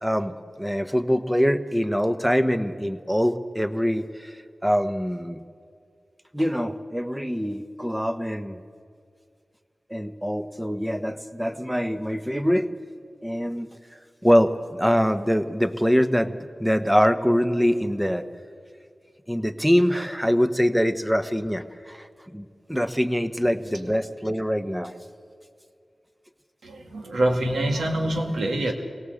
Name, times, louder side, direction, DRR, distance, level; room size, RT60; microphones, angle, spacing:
voice 1, 0.0-4.4 4.6-5.4 6.3-8.6 9.9-12.7 13.2-13.7 14.2-18.2 19.3-24.9, equal, 5° right, 9 dB, 1.3 m, -24 dB
voice 2, 26.6-28.7, right 1 dB, 90° right, 4 dB, 2.1 m, -25 dB
23.0 x 18.0 x 8.0 m, 2.2 s
cardioid pair, 40°, 0 cm